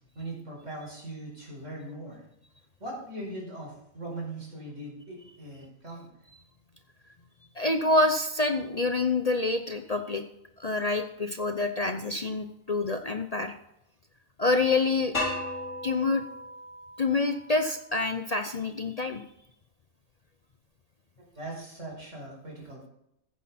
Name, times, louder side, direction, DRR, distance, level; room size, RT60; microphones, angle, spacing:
voice 1, 0.2-2.2 2.8-6.1 21.4-22.9, right 1 dB, 60° right, -2 dB, 5.4 m, -40 dB
voice 2, 7.6-10.2 10.6-13.5 14.4-15.1 15.8-16.2 17.0-19.2, left 3 dB, 40° left, 7 dB, 0.6 m, -27 dB
sound 1, 15.1-18.0, left 1 dB, 60° left, 4.3 m, -36 dB
14.5 x 9.7 x 4.3 m, 0.81 s
omnidirectional pair, 1.4 m